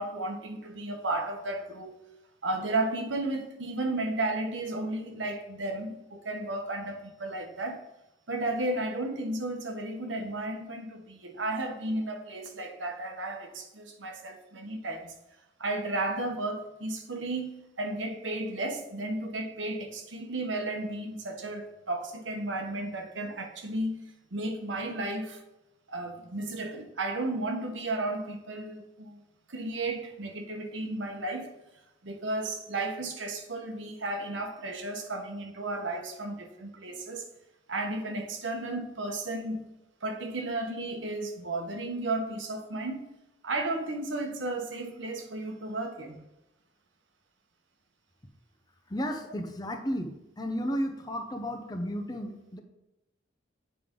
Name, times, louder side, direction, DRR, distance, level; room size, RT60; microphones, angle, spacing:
voice 1, 0.0-2.0 2.4-7.8 8.3-15.1 15.6-24.0 24.3-25.4 25.9-29.2 29.5-31.5 32.0-37.3 37.7-39.6 40.0-43.1 43.4-46.3, right 2 dB, 90° right, 4 dB, 1.1 m, -33 dB
voice 2, 48.9-52.6, equal, 20° left, 4 dB, 0.7 m, -33 dB
8.6 x 5.1 x 3.8 m, 0.93 s
head